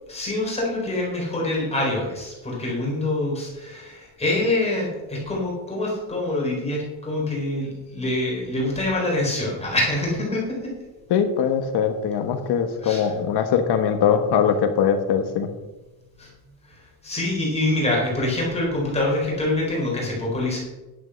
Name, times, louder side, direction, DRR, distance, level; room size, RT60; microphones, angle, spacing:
voice 1, 0.1-10.7 12.8-13.1 16.2-16.3 16.7-20.6, left 2 dB, 15° left, -3 dB, 4.1 m, -25 dB
voice 2, 11.1-15.5, left 7 dB, 60° left, 7 dB, 1.3 m, -21 dB
10.5 x 8.2 x 6.4 m, 1.1 s
cardioid pair, 180°, 45 cm